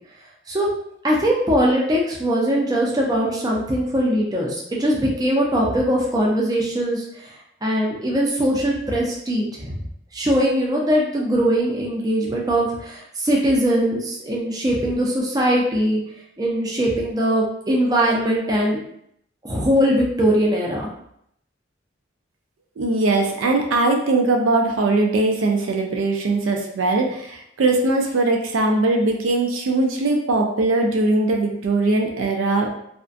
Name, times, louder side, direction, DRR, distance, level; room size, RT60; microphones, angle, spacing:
voice 1, 1.0-7.3 7.6-9.8 10.1-16.0 16.4-18.8 19.4-20.9, equal, 20° right, -3 dB, 0.4 m, -21 dB
voice 2, 22.8-32.7, right 2 dB, 85° right, 2 dB, 0.4 m, -20 dB
2.4 x 2.1 x 2.5 m, 0.72 s
head